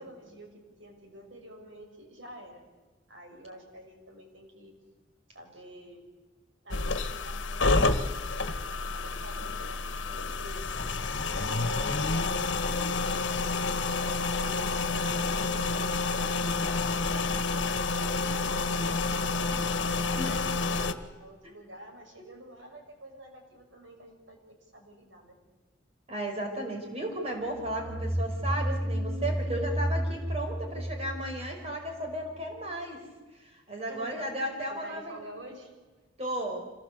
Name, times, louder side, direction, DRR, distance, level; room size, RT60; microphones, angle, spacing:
voice 1, 0.0-2.6 3.1-4.7 5.3-6.0 6.6-8.5 8.9-11.0 11.4-13.6 14.0-17.4 17.9-19.7 20.1-25.4 30.7-30.9 33.9-34.3 34.7-35.7, right 1 dB, 90° right, 2 dB, 6.6 m, -49 dB
sound 1, 6.7-20.9, left 3 dB, 80° left, 1.5 m, -29 dB
voice 2, 26.1-33.0 33.4-35.2 36.2-36.6, right 1 dB, 35° right, 2 dB, 4.9 m, -34 dB
sound 2, 27.5-32.0, equal, 50° right, 2.1 m, -31 dB
26.0 x 19.5 x 8.3 m, 1.3 s
head